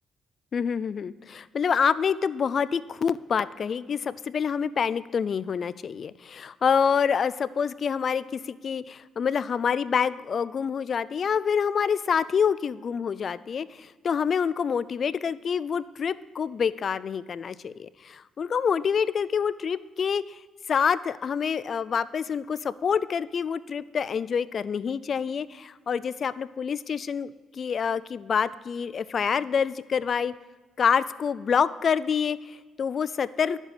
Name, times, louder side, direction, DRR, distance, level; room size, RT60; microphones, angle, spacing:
voice 1, 0.5-20.4 20.7-30.3 30.8-33.7, left 6 dB, 50° left, 17 dB, 0.4 m, -27 dB
11.0 x 7.4 x 5.0 m, 1.4 s
cardioid pair, 90°, 0 cm